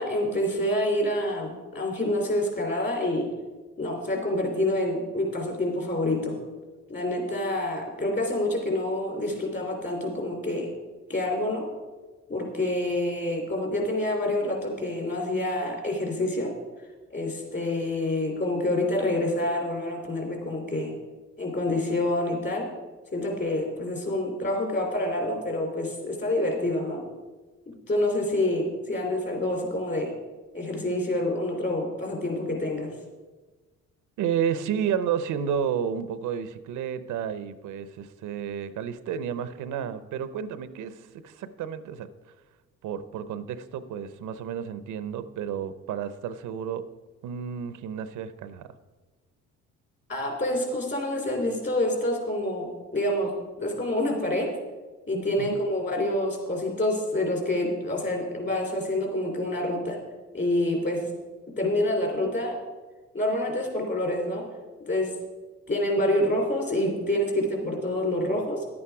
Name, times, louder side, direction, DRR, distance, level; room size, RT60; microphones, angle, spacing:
voice 1, 0.0-3.2 3.8-6.3 6.9-10.7 11.1-11.7 12.3-16.5 17.1-20.9 21.4-22.7 23.1-27.0 27.7-30.1 30.5-32.9 50.1-53.3 53.6-54.5 55.1-60.0 60.3-61.1 61.6-62.6 63.1-64.4 64.9-65.1 65.7-68.6, left 1 dB, 35° left, 1 dB, 3.5 m, -27 dB
voice 2, 34.2-42.1 42.8-46.8 47.2-48.7 55.4-55.6, right 8 dB, 85° right, 13 dB, 0.7 m, -31 dB
11.0 x 8.7 x 4.8 m, 1.3 s
cardioid pair, 90°, 30 cm